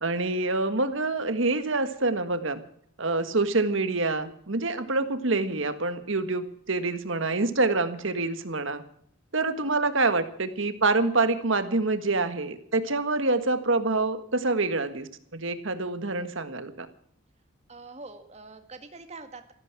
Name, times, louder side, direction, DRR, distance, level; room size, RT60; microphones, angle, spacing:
voice 1, 0.0-2.6 3.0-8.8 9.3-16.9, right 3 dB, 65° right, 10 dB, 1.6 m, -26 dB
voice 2, 17.7-19.5, right 3 dB, 30° right, 7 dB, 1.9 m, -44 dB
15.0 x 14.5 x 6.1 m, 0.63 s
head